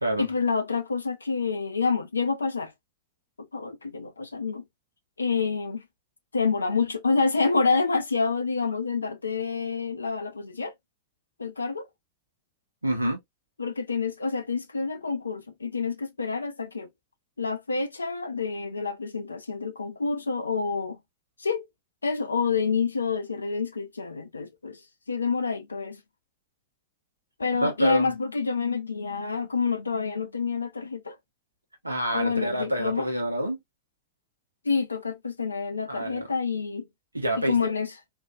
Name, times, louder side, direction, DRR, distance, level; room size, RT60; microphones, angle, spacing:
voice 1, 0.2-2.7 3.5-4.6 5.2-5.9 6.3-10.7 11.4-11.9 13.6-16.9 17.4-21.0 21.4-21.6 22.0-24.8 25.1-26.0 27.4-31.2 32.1-33.1 34.6-36.9 37.5-37.9, left 4 dB, 75° left, 0.6 m, -28 dB
voice 2, 12.8-13.2 27.6-28.1 31.8-33.6 35.9-36.3 37.1-37.7, right 1 dB, 85° right, 0.9 m, -27 dB
3.8 x 2.7 x 2.4 m
figure-of-eight pair, 90°, 0 cm